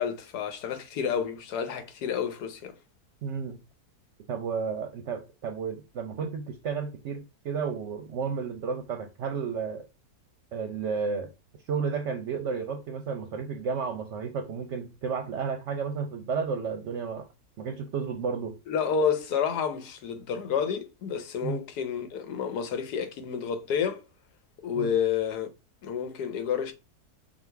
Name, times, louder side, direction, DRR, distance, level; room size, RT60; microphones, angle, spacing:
voice 1, 0.0-2.7 18.7-24.0 24.6-25.5 25.8-26.7, left 7 dB, 85° left, 1.4 m, -29 dB
voice 2, 3.2-3.6 4.3-9.8 10.5-11.3 11.7-17.3 17.6-18.6 21.4-21.6 24.7-24.9, right 5 dB, 60° right, 0.8 m, -32 dB
6.1 x 2.5 x 3.3 m
omnidirectional pair, 1.7 m